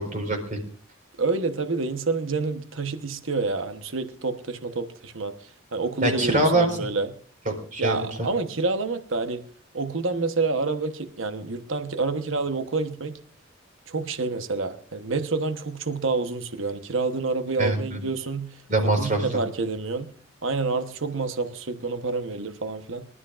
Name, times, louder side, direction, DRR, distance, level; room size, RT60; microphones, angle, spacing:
voice 1, 0.1-0.6 6.0-6.9 7.5-8.3 17.6-18.0 18.7-19.2, right 1 dB, 40° right, 3 dB, 4.5 m, -24 dB
voice 2, 1.2-5.3 5.7-7.1 7.8-9.4 9.7-13.2 13.9-18.6 19.0-20.1 20.4-23.1, right 3 dB, 70° right, 9 dB, 1.1 m, -28 dB
25.5 x 12.5 x 2.5 m, 0.43 s
head